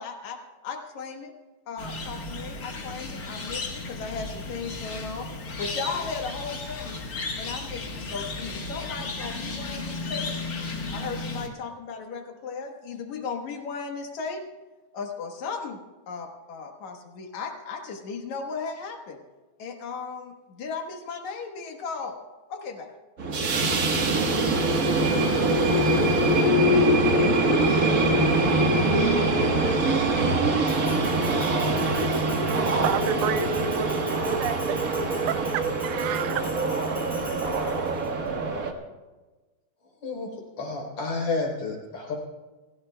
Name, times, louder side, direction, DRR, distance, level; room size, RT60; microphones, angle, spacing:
voice 1, 0.0-1.3 1.7-5.3 5.6-7.0 7.4-10.4 10.9-14.4 14.9-15.8 16.1-19.2 19.6-22.2 22.5-22.9, left 5 dB, 75° left, 2.6 m, -36 dB
sound 1, 1.8-11.5, left 3 dB, 40° left, 1.6 m, -34 dB
sound 2, 23.2-38.7, right 2 dB, 55° right, 1.0 m, -23 dB
Bell, 30.7-38.1, equal, ahead, 2.8 m, -45 dB
voice 2, 32.8-35.0 35.3-36.4, right 12 dB, 85° right, 2.0 m, -31 dB
voice 3, 40.6-42.2, left 3 dB, 55° left, 4.7 m, -30 dB
28.5 x 16.0 x 2.2 m
omnidirectional pair, 3.4 m